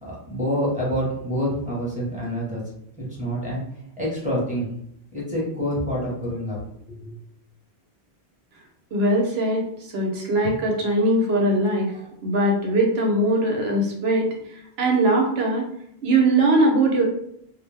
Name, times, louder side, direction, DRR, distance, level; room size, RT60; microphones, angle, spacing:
voice 1, 0.0-2.6 3.0-3.6 4.0-4.7 5.1-6.6 6.9-7.1, equal, 5° right, -6 dB, 1.0 m, -27 dB
voice 2, 8.9-15.7 16.0-17.0, right 1 dB, 75° right, 0 dB, 0.9 m, -21 dB
2.5 x 2.1 x 3.3 m, 0.72 s
omnidirectional pair, 1.1 m